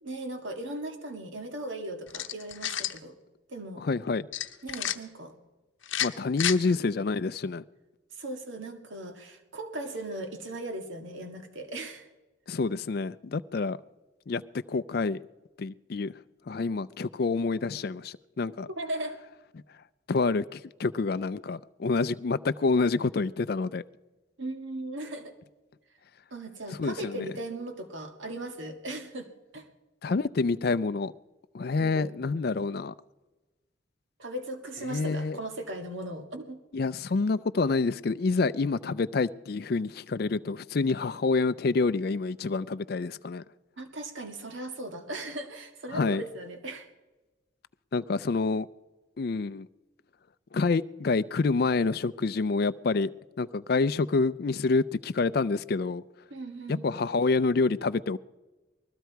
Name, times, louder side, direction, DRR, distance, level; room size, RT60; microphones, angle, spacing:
voice 1, 0.0-3.2 3.5-3.9 4.6-5.3 6.6-6.7 8.1-12.1 18.6-19.2 24.4-25.3 26.3-29.7 31.8-32.1 34.2-36.6 43.8-46.9 56.3-56.8, right 1 dB, 75° right, 6 dB, 1.8 m, -38 dB
sound 1, 2.1-3.0 4.3-5.0 5.8-6.6, left 11 dB, 75° left, 0.8 m, -30 dB
voice 2, 3.8-4.3 6.0-7.6 12.5-13.8 14.3-14.4 14.7-15.2 15.6-16.1 16.5-18.7 20.1-23.8 26.8-27.2 30.0-31.1 31.5-32.9 34.9-35.4 36.7-43.4 45.9-46.2 47.9-48.7 49.2-49.7 50.5-53.1 53.4-56.0 56.7-58.2, left 3 dB, 50° left, 14 dB, 0.4 m, -27 dB
20.5 x 14.5 x 4.6 m, 1.1 s
head